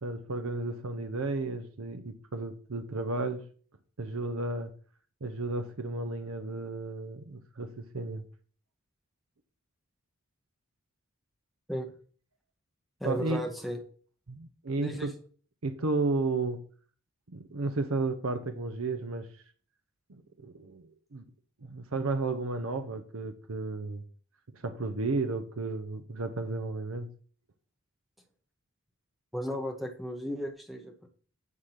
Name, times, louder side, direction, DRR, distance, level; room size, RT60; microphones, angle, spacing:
voice 1, 0.0-3.4 4.0-4.7 5.2-8.2 13.0-13.4 14.3-15.1 15.6-16.6 17.3-19.3 20.1-21.2 21.6-24.0 24.5-27.1, right 3 dB, 75° right, 0.8 m, -33 dB
voice 2, 13.0-13.8 14.8-15.1 29.3-31.1, equal, ahead, 1.2 m, -35 dB
9.5 x 3.8 x 5.8 m
head